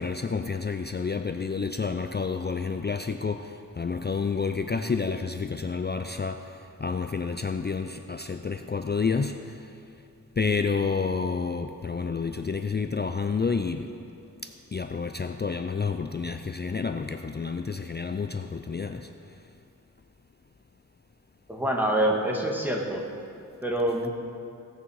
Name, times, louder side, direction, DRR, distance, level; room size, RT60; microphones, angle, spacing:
voice 1, 0.0-3.4 3.8-6.4 6.8-9.3 10.4-13.9 14.7-19.1, left 5 dB, 30° left, 7 dB, 0.4 m, -29 dB
voice 2, 21.5-23.0 23.6-24.1, right 1 dB, 5° right, 0 dB, 1.5 m, -26 dB
17.0 x 6.5 x 4.7 m, 2.5 s
wide cardioid pair, 80°, 35 cm